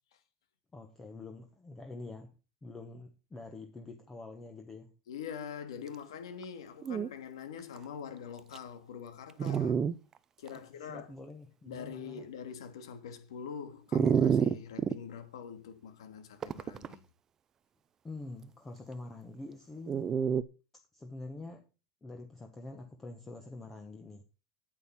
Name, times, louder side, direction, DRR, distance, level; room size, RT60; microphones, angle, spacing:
voice 1, 0.7-2.3 2.6-4.9 10.5-12.2 18.0-20.1 20.9-21.6 22.0-24.2, left 2 dB, 10° left, 1.2 m, -46 dB
voice 2, 5.1-9.8 10.4-11.1 11.7-17.0, left 7 dB, 85° left, 2.8 m, -44 dB
Dog, 6.4-6.5 6.8-7.1 7.8-7.9 8.5-8.6 9.4-9.9 10.5-10.6 13.9-15.0 16.4-16.9 19.9-20.4, right 7 dB, 20° right, 0.5 m, -28 dB
9.2 x 8.9 x 5.9 m
supercardioid pair, 160°, 3 cm